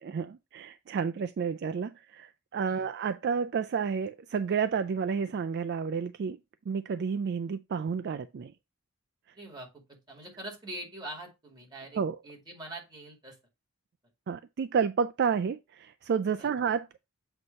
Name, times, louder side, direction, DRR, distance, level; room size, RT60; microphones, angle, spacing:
voice 1, 0.0-6.4 6.7-8.5 12.0-12.2 14.3-16.9, right 6 dB, 50° right, 0.3 m, -30 dB
voice 2, 9.3-13.4 16.4-16.5, right 1 dB, 20° right, 2.3 m, -44 dB
7.9 x 2.8 x 5.3 m
head